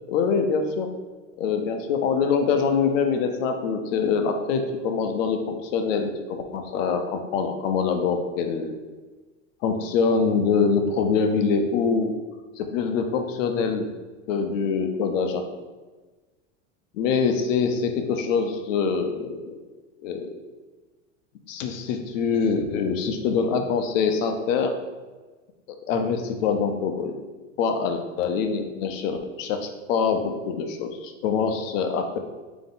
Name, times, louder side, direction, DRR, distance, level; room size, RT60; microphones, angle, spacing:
voice 1, 0.1-0.9 1.4-8.8 9.6-12.1 12.6-13.9 14.3-15.4 16.9-19.6 20.0-20.3 21.5-24.7 25.9-27.2 27.6-32.2, left 5 dB, 70° left, 5 dB, 0.7 m, -24 dB
3.6 x 2.9 x 3.9 m, 1.3 s
supercardioid pair, 130°, 40 cm